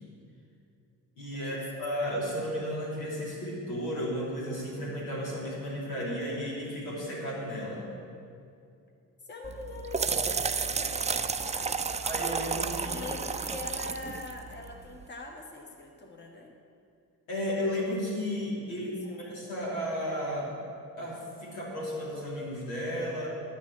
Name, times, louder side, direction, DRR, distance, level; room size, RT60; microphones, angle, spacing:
voice 1, 1.2-7.8 12.0-13.0 17.3-18.9 19.2-20.5 21.0-23.3, equal, 75° left, -6 dB, 3.0 m, -33 dB
voice 2, 9.2-11.9 12.8-16.5 18.6-19.2, left 3 dB, 20° left, 1 dB, 1.6 m, -44 dB
sound 1, 9.4-15.0, right 5 dB, 15° right, 0.5 m, -32 dB
9.8 x 6.2 x 8.7 m, 2.4 s
figure-of-eight pair, 45°, 48 cm